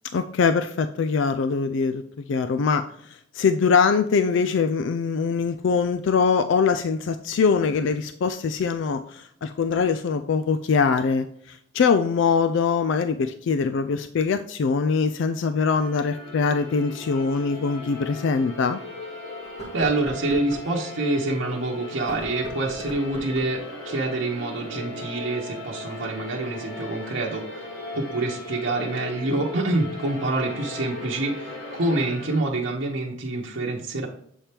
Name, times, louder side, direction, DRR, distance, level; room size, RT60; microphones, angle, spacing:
voice 1, 0.1-2.0 2.3-18.8, left 5 dB, 65° left, 10 dB, 0.4 m, -23 dB
sound 1, 15.7-32.4, left 2 dB, 90° left, 2.0 m, -37 dB
sound 2, 17.5-17.6 18.2-18.3 19.4-20.7 21.9-23.6, right 3 dB, 35° left, 1.8 m, -39 dB
voice 2, 19.7-27.7 27.9-34.1, right 2 dB, 75° right, -2 dB, 0.9 m, -27 dB
7.3 x 4.3 x 3.4 m, 0.69 s
head